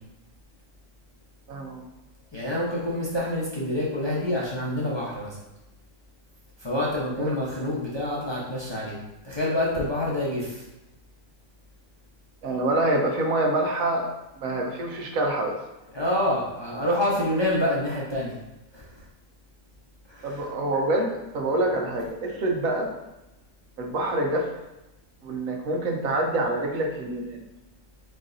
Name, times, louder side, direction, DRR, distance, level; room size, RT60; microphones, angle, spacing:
voice 1, 1.5-1.8 7.2-7.3 12.4-14.1 14.4-15.6 20.2-22.9 23.8-24.5 25.2-27.4, right 1 dB, 85° right, 1 dB, 1.2 m, -26 dB
voice 2, 2.3-5.4 6.6-9.0 9.2-10.6 15.9-18.4 18.7-18.9 20.1-20.5, left 1 dB, 25° left, -6 dB, 0.6 m, -27 dB
4.5 x 4.0 x 2.5 m, 0.97 s
omnidirectional pair, 1.4 m